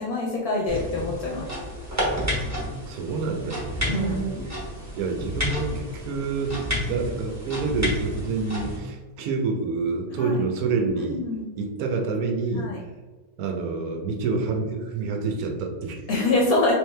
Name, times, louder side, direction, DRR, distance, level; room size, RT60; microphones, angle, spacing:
voice 1, 0.0-1.5 3.9-4.2 10.1-10.4 10.8-11.4 12.5-12.8 16.1-16.7, left 2 dB, 65° left, -3 dB, 0.9 m, -25 dB
sound 1, 0.7-8.8, left 1 dB, 20° right, 0.5 m, -31 dB
voice 2, 2.9-4.6 4.9-11.2 11.6-12.7 13.4-16.0, right 4 dB, 70° right, 2 dB, 0.9 m, -28 dB
3.4 x 3.2 x 3.2 m, 1.3 s
omnidirectional pair, 2.3 m